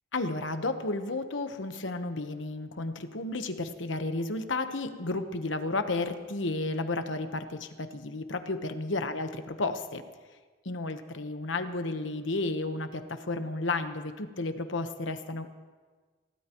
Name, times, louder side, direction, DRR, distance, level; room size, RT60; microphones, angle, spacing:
voice 1, 0.1-10.0 10.6-15.5, left 2 dB, 75° left, 8 dB, 1.1 m, -32 dB
28.0 x 16.5 x 3.1 m, 1.4 s
head